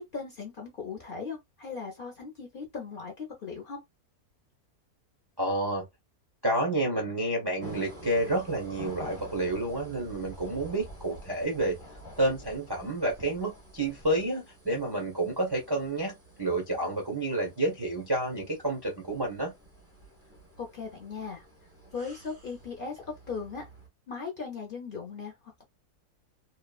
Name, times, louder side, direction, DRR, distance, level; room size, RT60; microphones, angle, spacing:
voice 1, 0.0-3.8 20.6-21.5 21.9-23.6 24.1-25.6, left 5 dB, 50° left, 0.6 m, -38 dB
voice 2, 5.4-5.9 6.4-11.8 12.2-19.5, right 1 dB, 35° right, 0.3 m, -29 dB
sound 1, 7.6-23.9, right 1 dB, 10° right, 0.8 m, -49 dB
2.8 x 2.2 x 2.2 m
omnidirectional pair, 1.6 m